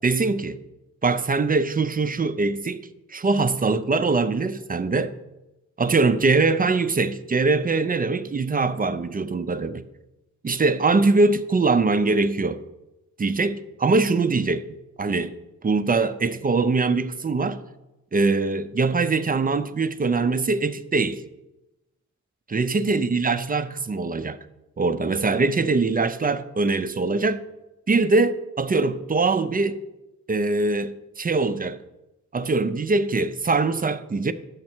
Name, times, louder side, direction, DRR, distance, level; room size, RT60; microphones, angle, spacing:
voice 1, 0.0-0.6 1.0-5.1 5.8-9.8 10.4-12.6 13.2-14.6 15.0-15.3 15.6-17.6 18.1-21.2 22.5-24.4 24.8-27.4 27.9-29.8 30.3-31.8 32.3-34.3, right 3 dB, 30° right, 0.5 m, -22 dB
9.4 x 7.3 x 4.4 m
cardioid pair, 85°, 30 cm